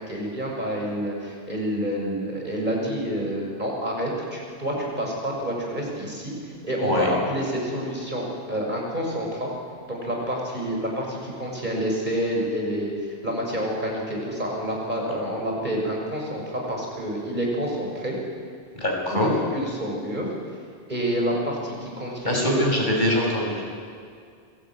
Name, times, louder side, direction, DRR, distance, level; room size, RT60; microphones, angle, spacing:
voice 1, 0.0-6.3 6.6-9.5 9.9-12.9 13.2-18.2 19.1-20.3 20.9-22.6, equal, 50° right, -1 dB, 6.8 m, -28 dB
voice 2, 18.8-19.3 22.3-23.6, left 1 dB, 50° left, -2 dB, 7.3 m, -23 dB
28.0 x 22.0 x 9.4 m, 2.2 s
omnidirectional pair, 1.1 m